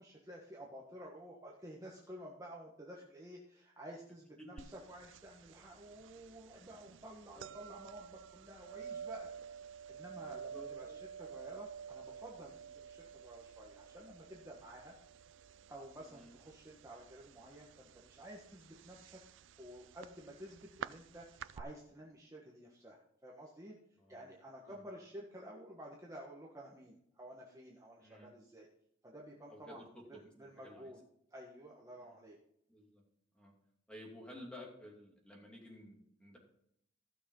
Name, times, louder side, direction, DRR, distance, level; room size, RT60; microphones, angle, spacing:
voice 1, 0.0-9.3 9.9-14.9 15.7-19.2 19.6-23.7 24.1-28.7 29.0-31.0 31.3-32.4, right 1 dB, 15° right, -3 dB, 1.3 m, -52 dB
sound 1, 4.6-21.6, right 7 dB, 65° right, 0.4 m, -51 dB
voice 2, 10.2-11.0 16.1-16.3 24.0-24.3 24.7-24.8 28.0-28.3 29.5-29.8 30.1-30.9 32.0-32.2 32.7-33.0 33.3-33.5 33.9-36.4, left 1 dB, 5° left, -1 dB, 2.6 m, -54 dB
15.5 x 6.4 x 3.8 m, 0.72 s
head